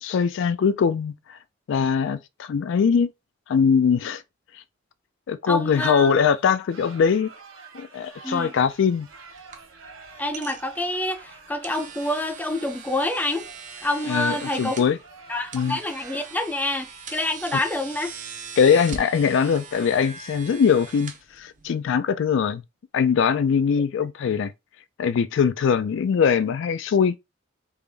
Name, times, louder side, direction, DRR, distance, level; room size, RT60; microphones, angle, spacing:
voice 1, 0.0-1.4 1.7-3.1 3.5-4.2 5.3-7.3 7.7-9.1 14.1-15.0 15.5-15.8 17.5-17.6 18.6-22.6 22.9-24.5 25.0-27.2, left 6 dB, 65° left, 0.3 m, -21 dB
voice 2, 5.5-6.1 8.2-8.5 10.2-13.5 13.8-14.7 15.3-18.1, left 1 dB, 10° left, 0.5 m, -27 dB
sound 1, 5.7-16.6, right 4 dB, 75° right, 1.0 m, -47 dB
sound 2, 8.6-21.9, right 5 dB, 40° right, 0.6 m, -41 dB
3.5 x 2.4 x 3.4 m
head